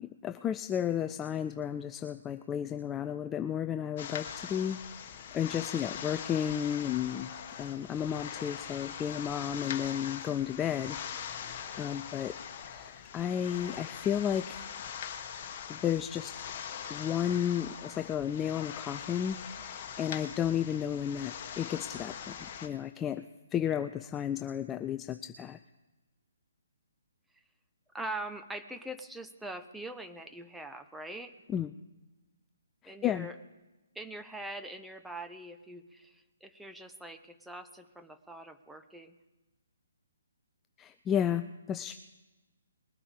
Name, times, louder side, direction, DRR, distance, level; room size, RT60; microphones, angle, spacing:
voice 1, 0.0-7.3 7.6-12.4 12.6-14.7 15.7-16.4 16.9-23.2 23.5-25.6 31.5-31.7 32.8-33.3 40.8-41.9, left 9 dB, 15° left, 10 dB, 0.3 m, -33 dB
sound 1, 4.0-22.7, left 8 dB, 40° left, 1.4 m, -42 dB
voice 2, 27.9-31.3 32.9-33.3 33.9-39.1, right 1 dB, 5° right, 7 dB, 0.8 m, -43 dB
20.5 x 8.6 x 4.9 m, 1.1 s
figure-of-eight pair, 140°, 0 cm